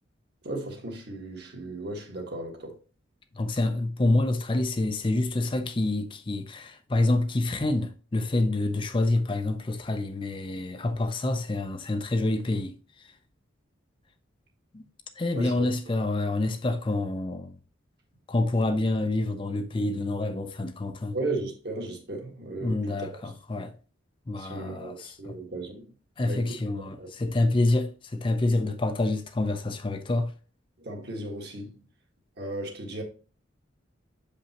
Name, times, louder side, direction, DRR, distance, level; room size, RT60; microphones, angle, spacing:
voice 1, 0.4-2.8 15.3-15.7 21.1-23.1 24.4-25.9 26.2-26.5 27.0-27.1 30.8-31.8 32.4-33.0, right 2 dB, 55° right, 1.6 m, -35 dB
voice 2, 3.3-12.7 14.7-14.9 15.2-17.6 18.3-21.1 22.6-23.7 24.3-25.4 26.2-30.3, left 2 dB, 25° left, 0.5 m, -27 dB
6.7 x 5.2 x 2.9 m
head